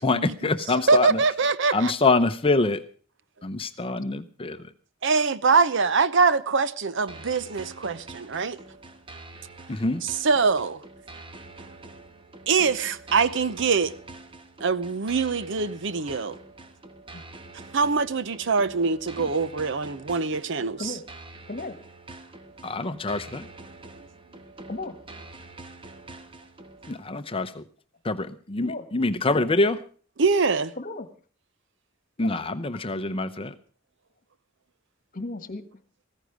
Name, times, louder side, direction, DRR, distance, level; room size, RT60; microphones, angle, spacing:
voice 1, 0.0-1.2 1.7-2.8 3.4-4.6 9.7-10.0 22.6-23.5 26.9-27.6 28.0-29.8 32.2-33.5, left 3 dB, 25° left, 0.7 m, -25 dB
voice 2, 0.9-1.9 5.0-8.6 10.0-10.8 12.5-13.9 14.6-16.4 17.7-21.0 30.2-30.7, right 4 dB, 65° right, 0.8 m, -23 dB
WD simpler conga dancehall, 7.1-27.1, right 2 dB, 25° right, 1.3 m, -45 dB
voice 3, 21.5-21.8 24.7-25.0 28.6-28.9 30.8-31.1 32.2-32.3 32.7-32.8 35.1-35.7, left 2 dB, 45° left, 1.5 m, -35 dB
15.0 x 14.5 x 5.0 m
head